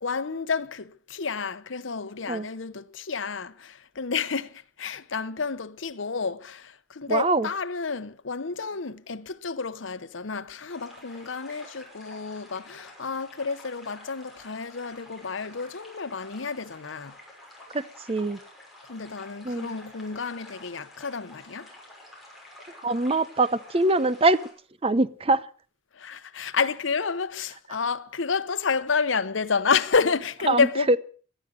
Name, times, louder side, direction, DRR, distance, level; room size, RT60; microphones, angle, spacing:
voice 1, 0.0-17.2 18.9-21.7 25.9-31.0, left 5 dB, 80° left, 0.9 m, -30 dB
voice 2, 7.1-7.5 17.7-18.4 19.4-19.7 22.8-24.4 24.8-25.5 30.5-31.0, right 2 dB, 30° right, 0.7 m, -23 dB
sound 1, 10.7-24.5, left 1 dB, ahead, 6.1 m, -49 dB
18.0 x 12.0 x 6.5 m
head